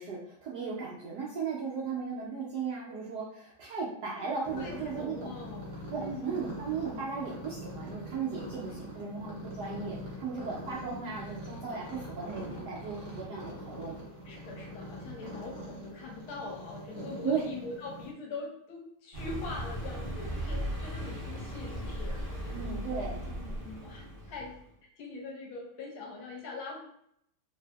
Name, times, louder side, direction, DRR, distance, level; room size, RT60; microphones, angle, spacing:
voice 1, 0.0-5.3 5.9-14.0 17.2-17.4 22.5-23.2, right 5 dB, 75° right, -5 dB, 0.9 m, -36 dB
sound 1, 4.4-18.1, equal, 60° right, 1.3 m, -43 dB
voice 2, 4.5-5.7 5.9-6.4 14.2-26.8, left 3 dB, 80° left, 0 dB, 1.6 m, -43 dB
Car passing by, 19.1-24.6, equal, 25° right, 0.7 m, -37 dB
3.3 x 2.7 x 2.2 m, 0.72 s
omnidirectional pair, 2.3 m